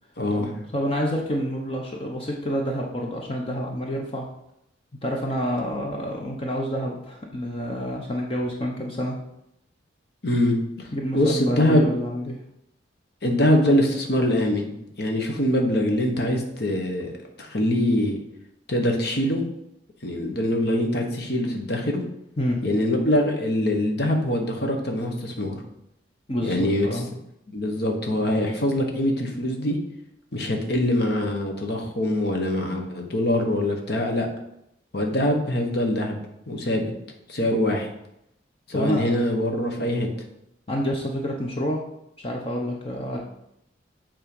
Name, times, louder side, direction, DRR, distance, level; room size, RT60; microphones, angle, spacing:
voice 1, 0.2-0.5 10.2-10.9 11.1-11.9 13.2-14.7 15.0-18.2 18.7-19.4 20.0-22.0 22.6-25.6 26.4-27.0 27.5-29.8 30.3-34.3 34.9-36.1 36.5-36.8 37.3-37.9 38.7-40.1, left 1 dB, 55° left, 2 dB, 1.2 m, -23 dB
voice 2, 0.7-4.3 5.0-9.2 10.9-12.4 22.4-22.6 26.3-27.1 38.7-39.0 40.7-41.8 42.2-43.2, equal, 30° left, 0 dB, 0.8 m, -28 dB
7.4 x 3.7 x 5.4 m, 0.79 s
head